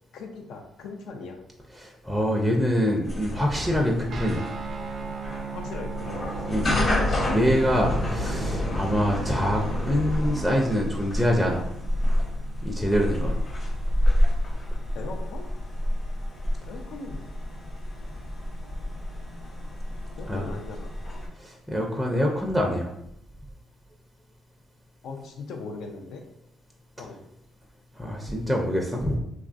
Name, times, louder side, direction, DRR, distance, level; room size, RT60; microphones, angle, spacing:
voice 1, 0.1-1.4 5.5-6.3 14.9-15.5 16.7-17.3 20.2-20.9 25.0-26.2 27.0-27.2, left 4 dB, 85° left, 2 dB, 0.4 m, -39 dB
voice 2, 1.8-4.5 6.5-6.7 7.3-11.6 12.6-13.4 20.3-20.4 21.4-22.9 27.9-29.2, equal, 5° left, -1 dB, 0.4 m, -25 dB
sound 1, 3.0-21.3, left 1 dB, 45° left, 1.0 m, -29 dB
Guitar, 4.1-13.9, right 5 dB, 55° right, 0.4 m, -39 dB
3.0 x 2.4 x 2.5 m, 0.78 s
cardioid pair, 90°, 0 cm